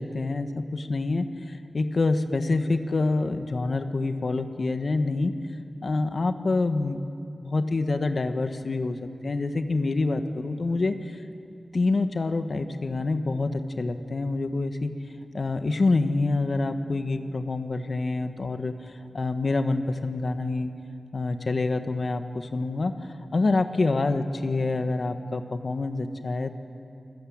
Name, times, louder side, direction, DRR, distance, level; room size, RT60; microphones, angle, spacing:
voice 1, 0.0-5.3 5.8-7.0 7.4-11.2 11.7-14.9 15.3-20.7 21.1-26.5, left 3 dB, 60° left, 8 dB, 1.6 m, -27 dB
28.0 x 21.5 x 8.8 m, 2.6 s
wide cardioid pair, 80°, 0 cm